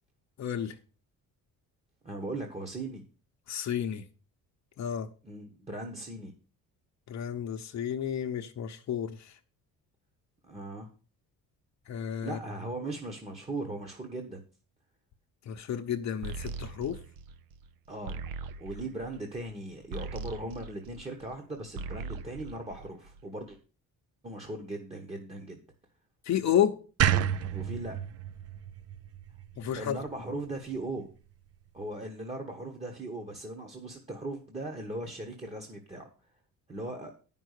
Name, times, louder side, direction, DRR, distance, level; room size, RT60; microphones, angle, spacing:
voice 1, 0.4-0.7 3.5-4.0 4.8-5.1 7.1-9.3 11.9-12.4 15.5-17.0 26.2-26.8 29.6-30.0, left 9 dB, 50° left, 0.9 m, -31 dB
voice 2, 2.0-3.0 5.2-6.3 10.4-10.9 12.2-14.4 17.9-18.2 18.6-23.6 24.2-25.6 27.5-28.0 29.7-31.1 31.7-36.1 36.7-37.1, right 2 dB, 20° right, 1.2 m, -38 dB
sound 1, 16.2-21.4 21.7-23.4, right 4 dB, 75° right, 0.9 m, -41 dB
sound 2, 27.0-30.2, right 10 dB, 45° right, 0.5 m, -30 dB
10.0 x 5.4 x 6.5 m
cardioid pair, 160°, 35 cm